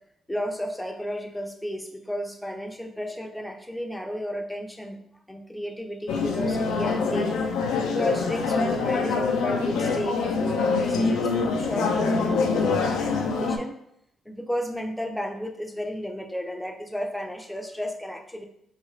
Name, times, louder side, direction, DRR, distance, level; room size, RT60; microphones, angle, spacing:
voice 1, 0.3-5.0 5.3-7.4 7.9-13.7 14.3-18.5, equal, 5° left, 4 dB, 0.5 m, -33 dB
sound 1, 6.1-13.6, left 4 dB, 90° left, 0.4 m, -25 dB
3.8 x 2.4 x 3.1 m, 0.75 s
cardioid pair, 90°, 0 cm